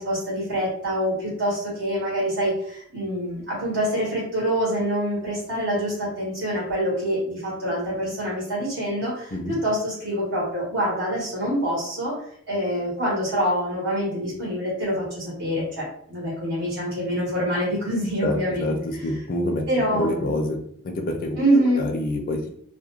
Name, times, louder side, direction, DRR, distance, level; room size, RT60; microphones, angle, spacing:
voice 1, 0.0-12.1 12.5-18.8 19.7-20.4 21.4-21.8, equal, 65° right, -5 dB, 1.0 m, -25 dB
voice 2, 18.2-20.6 20.8-21.4 21.8-22.5, left 1 dB, 45° left, 3 dB, 0.4 m, -27 dB
2.3 x 2.1 x 2.9 m, 0.66 s
head